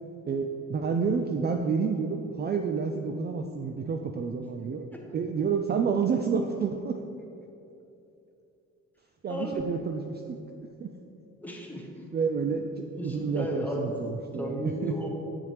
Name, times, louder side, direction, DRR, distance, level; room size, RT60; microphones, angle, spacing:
voice 1, 0.2-4.9 5.1-7.0 9.2-10.4 10.8-10.9 12.1-14.9, right 5 dB, 35° right, 5 dB, 0.4 m, -29 dB
voice 2, 9.3-9.6 11.4-12.1 12.9-13.9 14.3-15.1, equal, 5° left, -1 dB, 1.2 m, -34 dB
8.1 x 6.9 x 3.3 m, 2.8 s
cardioid pair, 90°, 30 cm